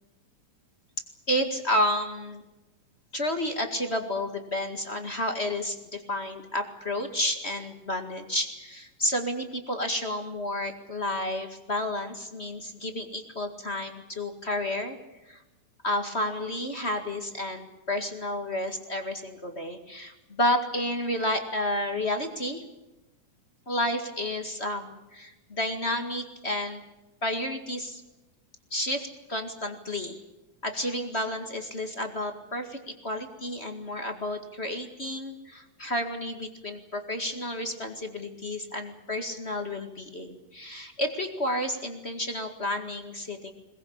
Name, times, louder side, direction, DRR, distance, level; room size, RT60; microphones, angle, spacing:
voice 1, 1.3-2.4 3.1-15.0 15.3-15.4 15.8-22.6 23.7-26.8 27.2-28.0 28.7-30.2 30.6-43.5, left 1 dB, 25° left, 5 dB, 1.6 m, -31 dB
22.0 x 21.0 x 8.7 m, 1.0 s
omnidirectional pair, 3.8 m